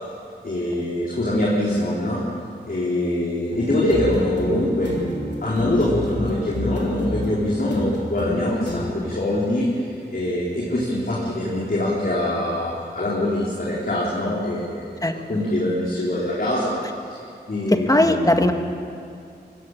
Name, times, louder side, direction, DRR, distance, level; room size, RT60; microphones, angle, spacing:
voice 1, 0.4-2.2 2.7-4.9 5.4-16.8 17.1-17.2 17.5-18.3, left 1 dB, 60° left, -6 dB, 3.9 m, -24 dB
sound 1, 3.5-8.9, left 1 dB, 85° left, 3.4 m, -29 dB
voice 2, 17.7-18.5, left 1 dB, 20° left, 5 dB, 1.7 m, -18 dB
22.5 x 16.5 x 9.0 m, 2.5 s
wide cardioid pair, 70°, 18 cm